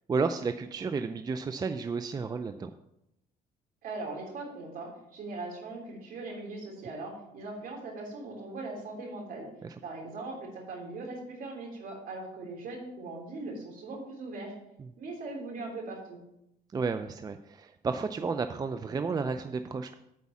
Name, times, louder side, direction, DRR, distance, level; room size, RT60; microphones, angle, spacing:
voice 1, 0.1-2.7 9.6-9.7 14.8-14.9 16.7-19.9, right 4 dB, 25° right, 9 dB, 0.4 m, -32 dB
voice 2, 3.8-9.5 9.8-14.5 15.0-16.2, right 2 dB, 60° right, 0 dB, 3.4 m, -40 dB
8.3 x 4.7 x 7.2 m, 0.83 s
cardioid pair, 110°, 17 cm